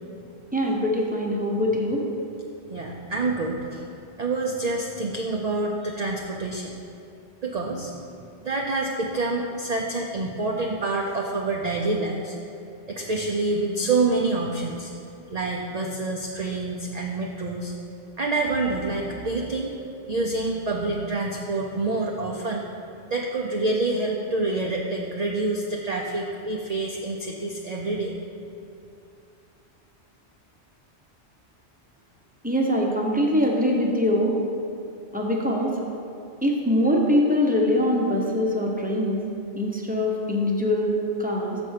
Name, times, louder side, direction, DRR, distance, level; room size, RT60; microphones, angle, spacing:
voice 1, 0.5-2.1 32.4-34.4 35.1-35.8 36.4-39.2 39.5-41.6, left 1 dB, 10° right, -1 dB, 0.7 m, -23 dB
voice 2, 2.7-3.9 4.2-6.7 7.4-8.0 8.4-12.3 12.9-14.9 15.3-17.7 18.2-19.7 20.1-22.6 23.1-28.1, right 2 dB, 45° right, 0 dB, 0.5 m, -27 dB
7.0 x 4.4 x 6.4 m, 2.6 s
omnidirectional pair, 1.2 m